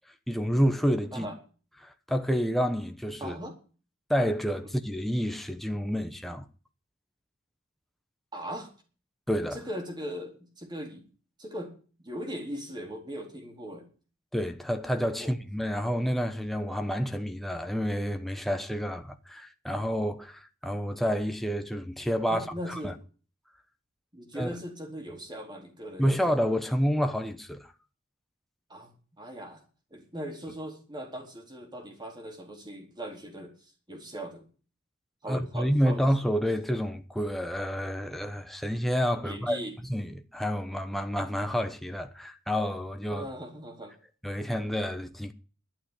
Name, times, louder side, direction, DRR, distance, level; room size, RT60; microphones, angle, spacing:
voice 1, 0.3-1.3 1.8-3.3 4.1-6.4 9.3-9.6 14.3-22.9 24.3-24.5 26.0-27.7 35.3-39.6 39.9-43.2 44.2-45.3, equal, ahead, 1.0 m, -29 dB
voice 2, 3.2-3.6 8.3-8.7 9.5-11.0 11.4-13.9 15.2-15.3 22.3-23.0 24.1-26.2 28.7-29.6 29.9-34.4 35.2-36.0 39.2-39.7 43.1-43.9, equal, 20° right, 4.0 m, -39 dB
12.0 x 8.9 x 9.9 m
head